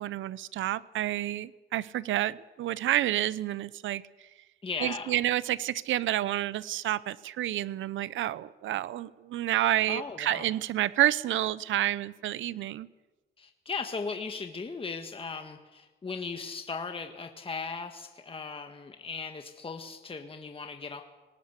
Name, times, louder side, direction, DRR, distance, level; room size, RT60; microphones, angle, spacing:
voice 1, 0.0-4.0 4.8-12.9, right 13 dB, 75° right, 19 dB, 0.7 m, -29 dB
voice 2, 4.6-5.2 9.9-10.5 13.4-21.0, left 4 dB, 25° left, 5 dB, 1.6 m, -37 dB
19.0 x 19.0 x 8.2 m, 1.2 s
cardioid pair, 90°, 20 cm